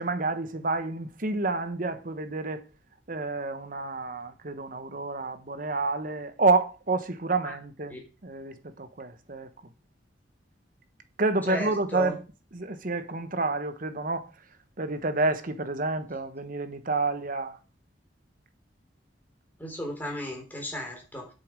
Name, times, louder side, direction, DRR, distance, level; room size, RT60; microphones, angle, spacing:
voice 1, 0.0-2.6 3.1-8.0 8.2-9.5 11.2-12.2 12.5-14.3 14.8-17.6, right 3 dB, 50° right, 1.1 m, -29 dB
voice 2, 11.5-12.2 19.6-21.3, left 1 dB, 10° left, 3.6 m, -35 dB
8.5 x 6.9 x 6.2 m
head